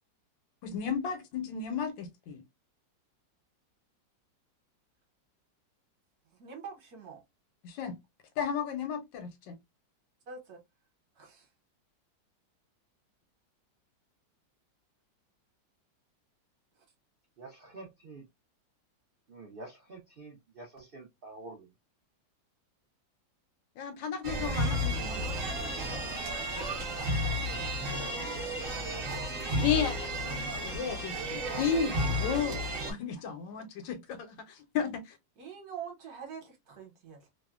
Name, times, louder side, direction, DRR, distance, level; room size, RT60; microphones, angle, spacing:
voice 1, 0.6-2.4 7.6-8.0 8.4-9.5 23.8-25.2 29.6-32.6 32.9-35.2, left 7 dB, 80° left, 1.4 m, -33 dB
voice 2, 6.4-7.2 10.3-10.6 11.1-11.5 16.7-16.8 27.2-27.7 35.4-37.3, right 6 dB, 60° right, 1.3 m, -45 dB
voice 3, 17.4-18.2 19.3-21.7, right 2 dB, 75° right, 0.5 m, -48 dB
sound 1, 24.2-32.9, equal, 45° right, 0.8 m, -32 dB
3.2 x 2.1 x 2.3 m
omnidirectional pair, 2.0 m